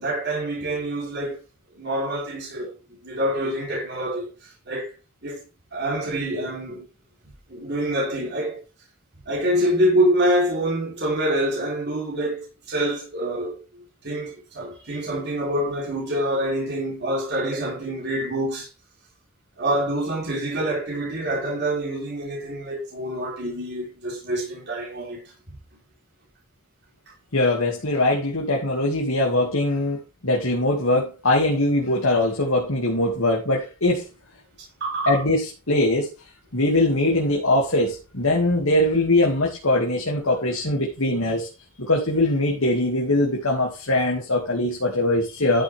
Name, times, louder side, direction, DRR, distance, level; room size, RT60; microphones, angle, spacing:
voice 1, 0.0-1.4 1.7-2.8 3.0-4.9 5.2-5.4 5.7-6.8 7.5-8.6 9.3-13.6 14.0-18.7 19.6-25.6 34.8-35.2, right 1 dB, 50° right, 3.8 m, -26 dB
voice 2, 27.3-34.1 35.1-36.1 36.5-41.5 41.8-45.6, left 1 dB, 70° left, 2.5 m, -22 dB
12.5 x 6.5 x 3.6 m
head